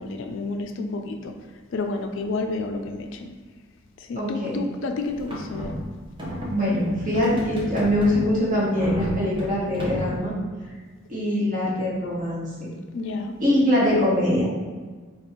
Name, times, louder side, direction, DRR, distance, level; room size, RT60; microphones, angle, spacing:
voice 1, 0.0-1.3 1.7-3.3 4.1-5.7 12.9-13.3, left 3 dB, 60° left, 5 dB, 0.3 m, -30 dB
voice 2, 4.2-4.5 6.5-10.3 11.1-12.7 13.4-14.4, left 1 dB, 40° right, -7 dB, 1.3 m, -23 dB
sound 1, 5.1-10.2, equal, 25° right, 0.7 m, -33 dB
3.4 x 2.3 x 4.4 m, 1.4 s
head